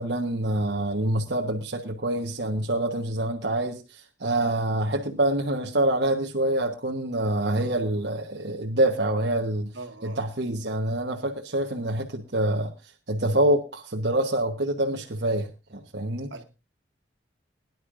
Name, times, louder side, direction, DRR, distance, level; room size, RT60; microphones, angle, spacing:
voice 1, 0.0-9.7 10.0-16.3, right 1 dB, 60° right, 1.2 m, -26 dB
voice 2, 9.7-10.3 16.3-16.4, right 3 dB, 75° right, 1.9 m, -41 dB
22.0 x 11.0 x 2.6 m
head